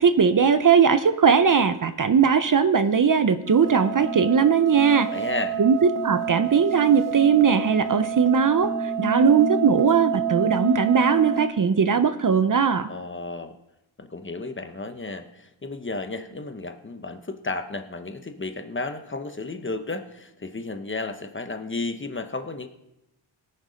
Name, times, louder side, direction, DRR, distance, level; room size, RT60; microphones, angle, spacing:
voice 1, 0.0-5.1 5.6-5.8 6.0-12.9, right 6 dB, 45° right, 11 dB, 0.7 m, -19 dB
sound 1, 3.5-11.5, right 6 dB, 45° left, 1.5 m, -29 dB
voice 2, 5.1-5.6 12.9-13.6 14.0-22.7, left 3 dB, 25° left, 7 dB, 0.9 m, -33 dB
18.0 x 6.7 x 5.1 m, 0.87 s
wide cardioid pair, 95°, 47 cm